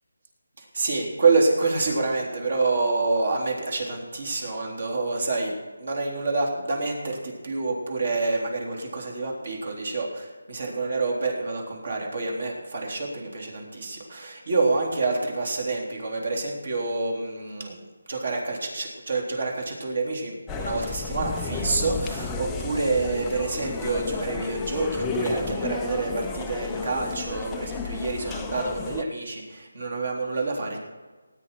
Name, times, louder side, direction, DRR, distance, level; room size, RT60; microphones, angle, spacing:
voice 1, 0.6-5.5 5.8-17.8 18.1-30.8, right 3 dB, 50° right, 0 dB, 3.6 m, -27 dB
sound 1, 20.5-29.0, left 5 dB, 5° left, 0.5 m, -33 dB
19.0 x 9.4 x 4.6 m, 1.3 s
figure-of-eight pair, 175°, 0 cm